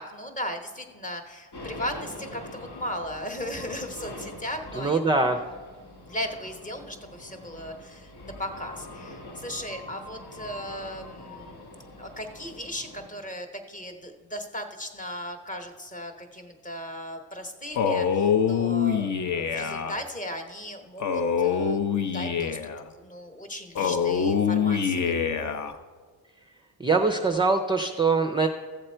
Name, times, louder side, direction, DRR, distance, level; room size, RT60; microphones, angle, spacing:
voice 1, 0.0-5.1 6.0-11.6 12.0-21.8 22.0-22.7 23.0-25.2, equal, 20° left, 5 dB, 1.0 m, -37 dB
sound 1, 1.5-13.1, left 1 dB, 85° left, 2.6 m, -43 dB
voice 2, 4.8-5.4 26.8-28.5, right 3 dB, 15° right, 3 dB, 0.4 m, -23 dB
Male speech man speaking, 17.7-20.0 21.0-22.8 23.7-25.7, left 7 dB, 50° left, 0.6 m, -25 dB
13.5 x 7.7 x 4.4 m, 1.5 s
wide cardioid pair, 155°, 38 cm